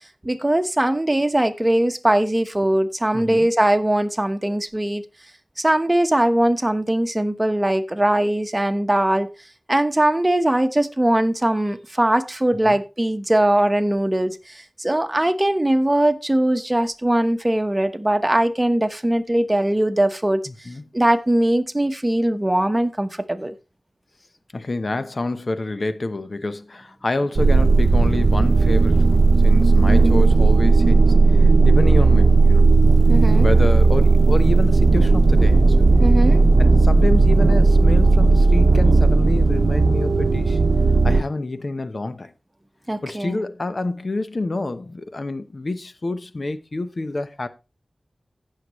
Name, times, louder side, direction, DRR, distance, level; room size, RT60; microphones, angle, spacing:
voice 1, 0.2-5.0 5.6-9.3 9.7-20.5 20.9-23.5 29.9-30.2 33.1-33.5 36.0-36.4 42.9-43.4, right 1 dB, 20° right, 1.1 m, -20 dB
voice 2, 3.1-3.5 12.6-12.8 20.5-20.8 24.5-32.7 33.3-35.8 36.6-40.6 41.0-42.3 43.0-47.5, left 2 dB, 55° left, 0.9 m, -28 dB
sound 1, 27.4-41.2, right 3 dB, 70° right, 0.8 m, -15 dB
16.0 x 6.6 x 3.1 m
wide cardioid pair, 55°, 0 cm